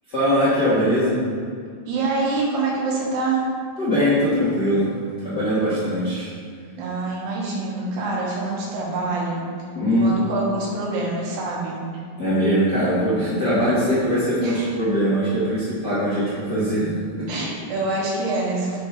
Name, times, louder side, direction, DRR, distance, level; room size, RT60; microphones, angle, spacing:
voice 1, 0.1-1.2 3.8-4.9 5.2-6.3 9.7-10.2 12.2-17.3, equal, 45° left, -11 dB, 1.4 m, -21 dB
voice 2, 1.9-3.5 6.8-9.4 9.9-11.8 13.5-13.7 14.4-14.7 17.3-18.8, right 3 dB, 80° right, -4 dB, 3.5 m, -26 dB
7.9 x 5.3 x 4.8 m, 2.1 s
omnidirectional pair, 4.6 m